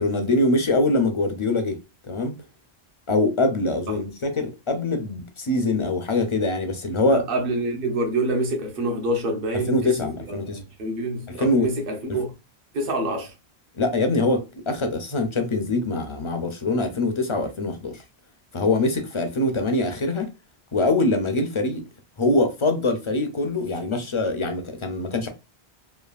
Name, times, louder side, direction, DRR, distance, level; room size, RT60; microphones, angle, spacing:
voice 1, 0.0-1.8 2.0-2.3 3.1-7.2 9.7-10.6 11.3-11.7 13.8-18.0 18.5-20.3 20.7-21.8 22.2-25.3, left 2 dB, 45° left, 0.4 m, -23 dB
voice 2, 7.1-9.8 10.3-10.4 10.8-12.3 12.7-13.3, right 1 dB, 65° right, 1.0 m, -26 dB
3.2 x 2.3 x 2.3 m
omnidirectional pair, 1.0 m